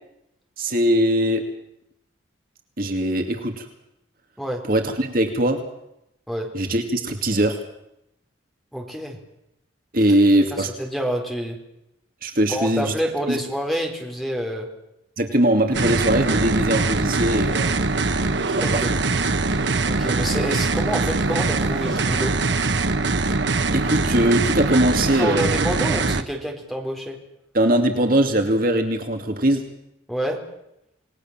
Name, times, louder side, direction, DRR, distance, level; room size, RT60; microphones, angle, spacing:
voice 1, 0.6-1.4 2.8-3.7 4.7-5.6 6.5-7.6 9.9-10.7 12.2-12.9 13.3-13.4 15.2-17.7 18.7-18.8 23.7-25.7 27.5-29.6, right 1 dB, 45° right, 5 dB, 2.5 m, -21 dB
voice 2, 8.7-9.2 10.5-11.6 12.5-14.7 18.6-18.9 19.8-22.3 24.9-27.2 30.1-30.4, equal, ahead, 2 dB, 4.1 m, -28 dB
sound 1, 15.7-26.2, right 3 dB, 60° right, 1.3 m, -22 dB
28.5 x 19.5 x 7.4 m, 0.83 s
head